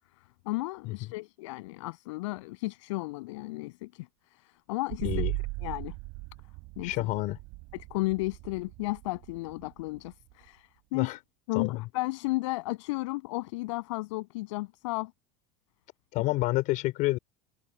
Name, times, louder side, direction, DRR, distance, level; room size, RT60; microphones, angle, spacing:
voice 1, 0.4-5.1 5.6-5.9 6.8-7.1 7.7-11.1 11.5-15.1, left 22 dB, 85° left, 7.8 m, -34 dB
sound 1, 4.9-10.5, right 26 dB, 60° right, 7.5 m, -38 dB
voice 2, 5.0-5.3 6.8-7.4 10.9-11.2 11.5-11.8 16.1-17.2, left 19 dB, 55° left, 4.4 m, -29 dB
supercardioid pair, 135°, 16 cm